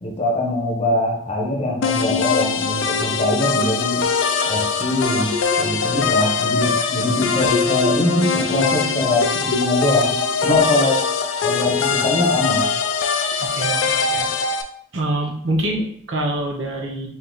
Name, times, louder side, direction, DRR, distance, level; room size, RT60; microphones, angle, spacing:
voice 1, 0.0-4.1 4.5-10.2 10.4-11.0 11.4-12.7, left 1 dB, 30° left, -1 dB, 0.9 m, -22 dB
sound 1, 1.8-14.6, left 5 dB, 80° left, 0.4 m, -21 dB
voice 2, 13.4-14.3 14.9-17.1, right 1 dB, 75° right, 0 dB, 0.8 m, -25 dB
3.4 x 2.8 x 3.8 m, 0.62 s
head